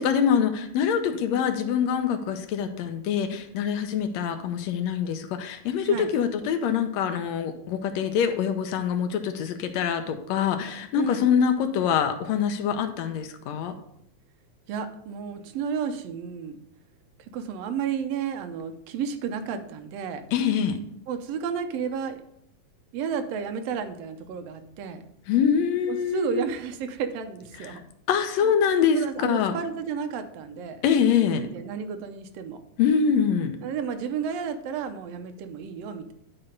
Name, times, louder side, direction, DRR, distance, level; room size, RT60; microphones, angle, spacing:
voice 1, 0.0-13.7 20.3-20.8 25.3-26.4 27.6-27.8 28.1-29.5 30.8-31.5 32.8-33.5, left 7 dB, 75° left, 7 dB, 1.7 m, -24 dB
voice 2, 10.9-11.3 14.7-16.6 17.3-20.2 21.1-22.2 22.9-25.0 25.9-27.9 28.9-30.8 31.3-32.6 33.6-36.1, right 7 dB, 75° right, 7 dB, 1.5 m, -32 dB
10.0 x 3.9 x 5.2 m, 0.74 s
omnidirectional pair, 3.6 m